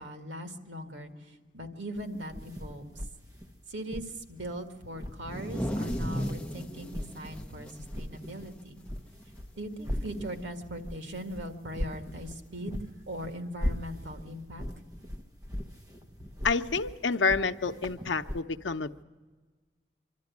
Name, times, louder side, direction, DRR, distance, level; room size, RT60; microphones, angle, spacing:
voice 1, 0.0-2.9 3.7-8.8 9.6-14.7, equal, 85° right, 7 dB, 1.9 m, -40 dB
sound 1, 2.0-5.6 5.9-7.5 7.8-18.4, equal, 20° right, 1.1 m, -39 dB
sound 2, 5.1-8.9 9.2-9.4 9.7-10.2 11.3-11.4 12.4-12.5, equal, 5° left, 0.8 m, -36 dB
voice 2, 16.4-19.0, left 4 dB, 85° left, 9 dB, 0.7 m, -28 dB
25.0 x 12.5 x 9.5 m, 1.4 s
head